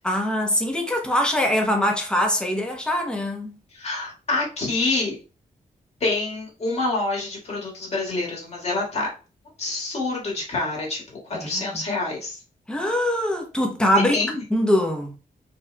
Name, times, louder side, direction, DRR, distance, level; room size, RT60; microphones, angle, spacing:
voice 1, 0.0-3.5 11.3-11.8 12.7-14.2 14.5-15.2, left 1 dB, 5° left, 0.9 m, -23 dB
voice 2, 3.7-5.2 6.0-9.1 9.6-11.0 11.4-12.4 14.1-14.4, left 3 dB, 45° left, 1.8 m, -26 dB
4.3 x 4.1 x 2.2 m
wide cardioid pair, 170°, 15 cm